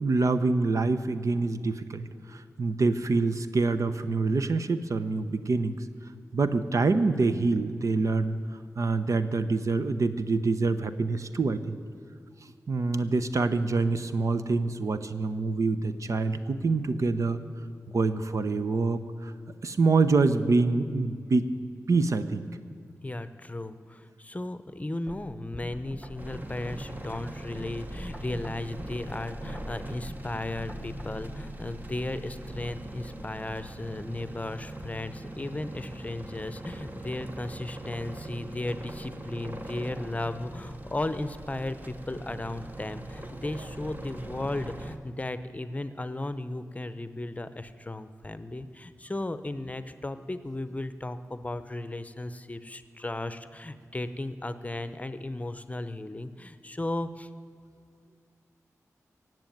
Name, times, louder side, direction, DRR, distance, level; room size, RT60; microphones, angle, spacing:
voice 1, 0.0-2.0 2.3-5.8 6.3-8.4 8.8-11.8 12.7-17.4 17.9-19.3 19.6-21.5 21.9-22.5, right 3 dB, 65° right, 11 dB, 0.7 m, -26 dB
voice 2, 23.0-57.3, left 2 dB, 25° left, 12 dB, 0.8 m, -35 dB
sound 1, 25.1-31.0, equal, 5° right, 1.6 m, -44 dB
sound 2, 26.2-45.0, right 1 dB, 30° right, 1.2 m, -41 dB
16.5 x 7.7 x 9.2 m, 2.1 s
cardioid pair, 50°, 6 cm